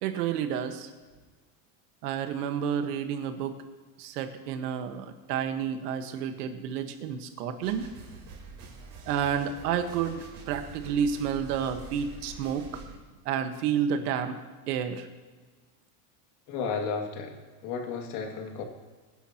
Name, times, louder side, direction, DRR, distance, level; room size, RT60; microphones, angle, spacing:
voice 1, 0.0-0.9 2.0-3.5 4.0-7.9 9.1-12.7 13.2-14.4 14.7-15.1, right 8 dB, 75° right, 7 dB, 1.5 m, -30 dB
sound 1, 7.6-13.0, right 4 dB, 40° right, 3.7 m, -46 dB
voice 2, 16.5-18.6, left 5 dB, 65° left, 2 dB, 2.3 m, -33 dB
24.0 x 10.5 x 3.0 m, 1.4 s
cardioid pair, 175°, 47 cm